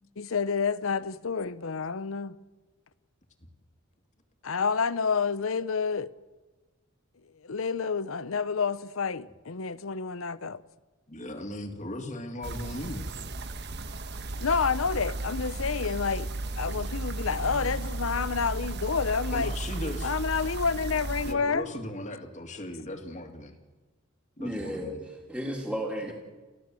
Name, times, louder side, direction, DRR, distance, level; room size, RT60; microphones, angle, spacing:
voice 1, 0.2-2.4 4.4-6.1 7.4-10.6 14.4-16.3 16.6-19.5 20.0-21.7, left 5 dB, 85° left, 0.8 m, -29 dB
voice 2, 11.1-13.1 19.3-20.2 21.2-23.5 24.4-25.0 26.0-26.1, left 1 dB, 35° left, 2.5 m, -37 dB
sound 1, 12.4-21.3, right 2 dB, 55° right, 1.2 m, -34 dB
voice 3, 24.4-26.1, equal, 5° right, 2.7 m, -34 dB
30.0 x 15.5 x 7.8 m
head